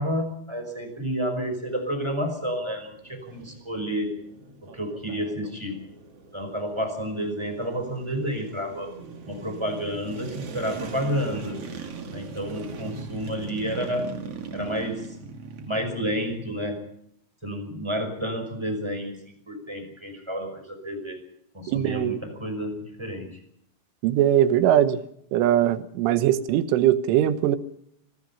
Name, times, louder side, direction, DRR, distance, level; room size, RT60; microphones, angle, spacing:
voice 1, 0.0-4.2 4.6-5.8 6.3-8.9 9.2-11.7 12.1-14.1 14.5-15.2 15.7-16.9 17.4-19.2 19.4-21.2 21.5-23.4, equal, 5° right, 6 dB, 4.9 m, -30 dB
sound 1, 1.5-16.7, right 4 dB, 45° right, 2.1 m, -40 dB
voice 2, 21.7-22.2 24.0-25.0 25.3-27.6, right 11 dB, 75° right, 12 dB, 3.6 m, -21 dB
26.0 x 20.0 x 5.6 m, 0.72 s
omnidirectional pair, 5.9 m